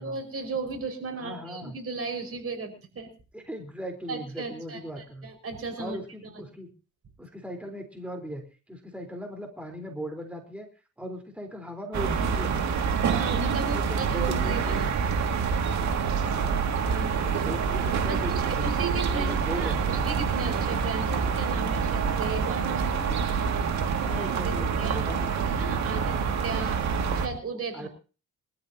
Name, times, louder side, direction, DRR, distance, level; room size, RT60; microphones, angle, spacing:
voice 1, 0.0-3.1 4.1-6.0 13.1-14.9 16.9-17.4 18.1-23.2 24.1-25.1 25.5-26.2 26.4-26.8 27.1-27.9, right 4 dB, 50° right, 5 dB, 5.6 m, -35 dB
voice 2, 1.2-1.8 3.3-5.3 5.8-6.7 7.2-10.7 11.0-12.6 13.6-15.0 16.3-16.7 17.3-18.7 19.1-20.1 23.9-25.5 25.9-26.3 27.7-27.9, equal, 5° right, 3 dB, 4.2 m, -38 dB
sound 1, 11.9-27.3, right 6 dB, 65° right, 2.4 m, -27 dB
24.0 x 13.5 x 2.9 m, 0.35 s
cardioid pair, 90°, 30 cm